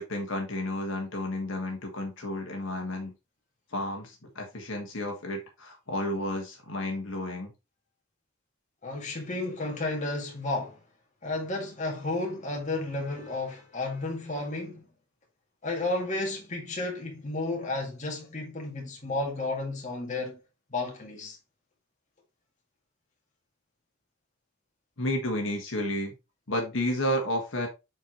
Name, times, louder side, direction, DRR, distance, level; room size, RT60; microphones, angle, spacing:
voice 1, 0.0-3.1 3.7-7.5 25.0-26.1 26.5-27.7, left 1 dB, 65° left, 1.6 m, -31 dB
voice 2, 8.8-10.8 11.2-14.9 15.6-20.4 20.7-21.4, left 2 dB, 35° left, 2.0 m, -32 dB
7.5 x 4.7 x 3.0 m
head